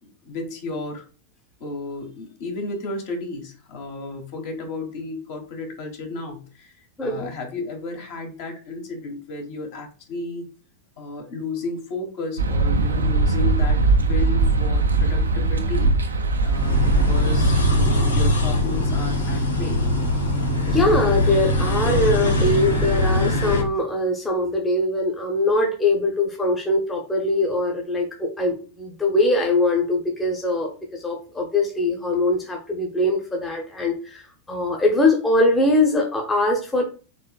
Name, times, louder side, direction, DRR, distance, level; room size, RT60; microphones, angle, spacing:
voice 1, 0.2-1.0 1.6-6.7 7.0-10.5 11.0-19.8, left 3 dB, 50° left, 2 dB, 1.2 m, -33 dB
voice 2, 7.0-7.3 20.7-36.8, left 2 dB, 15° left, 0 dB, 0.8 m, -22 dB
sound 1, 12.4-17.7, right 3 dB, 75° right, 0.5 m, -20 dB
sound 2, 16.4-23.6, left 1 dB, 80° left, 0.9 m, -21 dB
4.4 x 3.2 x 2.3 m, 0.36 s
figure-of-eight pair, 90°, 0 cm